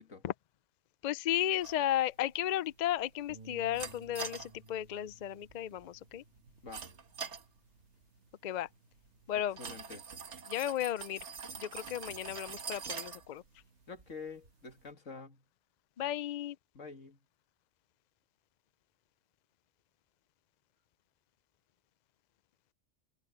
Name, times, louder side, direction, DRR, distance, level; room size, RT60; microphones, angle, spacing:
voice 1, 1.0-6.2 8.4-8.7 9.3-9.6 10.5-11.2 11.6-13.4 16.0-16.6, left 12 dB, 60° left, 0.4 m, -34 dB
sound 1, 1.6-14.9, right 5 dB, 65° right, 1.6 m, -47 dB
Bass guitar, 3.3-7.8 8.1-9.5, right 3 dB, 35° right, 1.5 m, -58 dB
voice 2, 9.3-10.0 13.9-15.4 16.7-17.2, left 4 dB, 75° left, 2.4 m, -47 dB
omnidirectional pair, 1.3 m